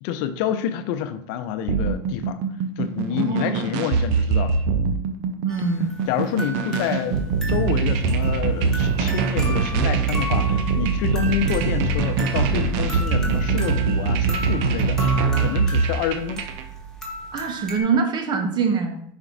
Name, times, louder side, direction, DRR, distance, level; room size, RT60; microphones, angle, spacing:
voice 1, 0.0-2.4 2.8-4.6 6.1-16.4, left 9 dB, 70° left, 10 dB, 0.6 m, -28 dB
sound 1, 1.7-16.6, right 5 dB, 70° right, 0.7 m, -23 dB
voice 2, 3.1-3.7 5.4-5.9 17.3-19.0, right 5 dB, 40° right, 5 dB, 1.2 m, -24 dB
sound 2, 5.5-17.8, equal, 5° left, 1.5 m, -36 dB
5.7 x 4.4 x 4.0 m, 0.69 s
supercardioid pair, 100°, 11 cm